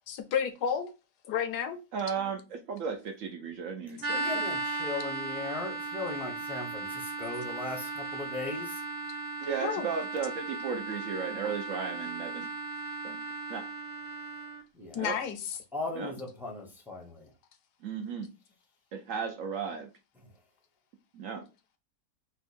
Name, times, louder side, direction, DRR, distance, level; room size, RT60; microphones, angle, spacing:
voice 1, 0.1-0.9 1.3-1.8 4.0-4.1 9.6-9.9 14.9-15.6, left 8 dB, 80° left, 1.2 m, -31 dB
voice 2, 1.9-4.4 9.4-12.5 13.0-13.2 13.5-13.7 15.0-15.2 16.0-16.1 17.8-18.3 18.9-19.9 21.1-21.4, right 6 dB, 65° right, 0.8 m, -35 dB
sound 1, 4.0-14.6, right 2 dB, 90° right, 0.5 m, -36 dB
voice 3, 4.1-8.8 14.7-15.0 15.7-17.3, left 3 dB, ahead, 0.6 m, -38 dB
4.4 x 2.3 x 4.1 m
omnidirectional pair, 1.8 m